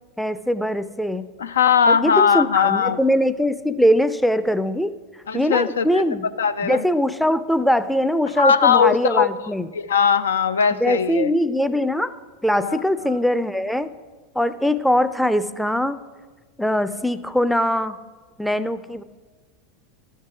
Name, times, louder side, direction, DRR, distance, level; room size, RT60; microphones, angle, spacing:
voice 1, 0.2-1.3 1.9-4.9 5.3-6.3 6.6-9.7 10.8-12.1 12.4-13.9 14.3-16.0 16.6-18.0 18.4-19.0, equal, ahead, 12 dB, 0.4 m, -21 dB
voice 2, 1.4-3.0 5.3-6.0 6.4-6.8 8.4-9.3 9.7-11.3 12.6-12.8 13.1-13.2, left 7 dB, 80° left, 13 dB, 0.3 m, -19 dB
12.5 x 4.6 x 5.9 m, 1.3 s
figure-of-eight pair, 85°, 0 cm